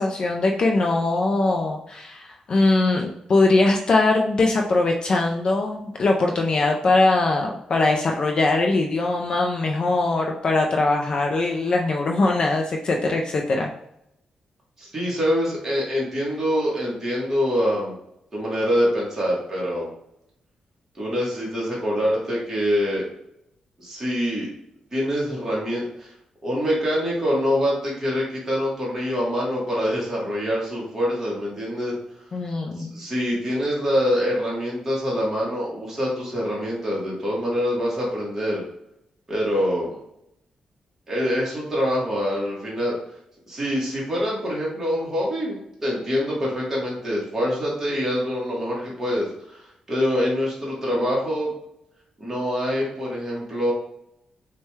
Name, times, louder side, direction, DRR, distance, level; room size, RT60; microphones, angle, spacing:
voice 1, 0.0-13.7 32.3-33.0, left 2 dB, 40° left, 1 dB, 0.4 m, -21 dB
voice 2, 14.8-18.0 18.3-19.9 21.0-23.1 23.8-24.5 24.9-26.1 26.4-31.9 32.8-38.6 39.3-40.0 41.1-43.0 43.5-49.6 49.9-51.5 52.2-53.7, equal, 15° right, -6 dB, 1.2 m, -25 dB
6.3 x 2.2 x 3.2 m, 0.78 s
wide cardioid pair, 165°, 2 cm